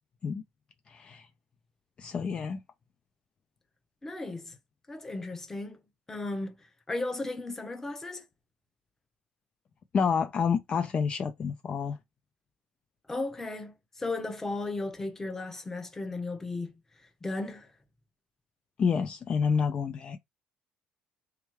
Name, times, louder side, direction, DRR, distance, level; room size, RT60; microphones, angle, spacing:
voice 1, 0.9-1.3 2.0-2.6 9.9-12.0 18.8-20.2, left 6 dB, 35° left, 0.5 m, -28 dB
voice 2, 4.0-4.5 4.9-5.8 6.1-6.6 6.9-8.3 13.1-16.7 17.2-17.7, left 2 dB, 15° left, 0.9 m, -35 dB
3.4 x 3.0 x 3.1 m
cardioid pair, 120°, 3 cm